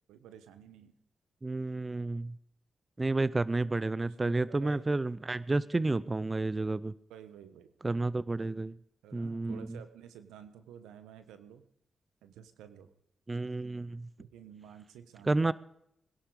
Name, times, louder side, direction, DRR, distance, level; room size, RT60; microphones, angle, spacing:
voice 1, 0.1-0.9 4.0-4.9 7.1-7.7 9.0-11.6 12.2-12.9 14.2-15.3, right 9 dB, 85° right, 10 dB, 1.1 m, -51 dB
voice 2, 1.4-2.4 3.0-6.9 7.8-8.7 9.1-9.8 13.3-14.1 15.2-15.5, right 2 dB, 30° right, 18 dB, 0.6 m, -31 dB
21.0 x 11.5 x 4.9 m, 0.77 s
supercardioid pair, 40°, 0 cm